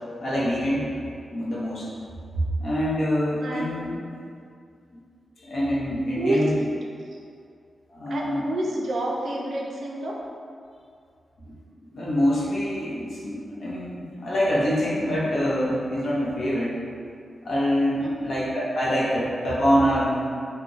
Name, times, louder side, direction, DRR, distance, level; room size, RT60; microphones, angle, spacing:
voice 1, 0.2-0.9 1.3-1.9 2.6-4.0 5.4-6.5 7.9-8.5 11.4-11.5 11.9-16.8 17.4-20.2, equal, 65° left, -7 dB, 0.8 m, -25 dB
voice 2, 3.4-3.7 6.1-6.6 7.1-7.2 8.1-10.2 18.0-18.3, right 1 dB, 65° right, -2 dB, 0.4 m, -28 dB
2.4 x 2.1 x 3.7 m, 2.3 s
wide cardioid pair, 125°, 0 cm